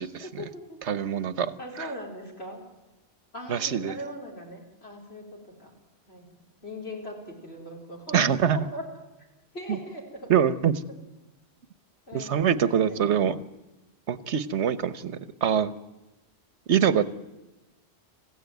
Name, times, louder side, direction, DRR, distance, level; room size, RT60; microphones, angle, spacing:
voice 1, 0.0-0.8 1.4-2.6 3.3-5.7 6.1-6.4 6.6-8.8 9.5-10.3 12.1-13.1, left 1 dB, 65° left, -1 dB, 4.8 m, -40 dB
voice 2, 0.9-1.9 3.5-3.9 8.1-8.6 10.3-10.8 12.1-13.4 14.1-15.7 16.7-17.0, right 8 dB, 90° right, 15 dB, 1.3 m, -24 dB
27.0 x 16.0 x 9.3 m, 1.0 s
omnidirectional pair, 1.1 m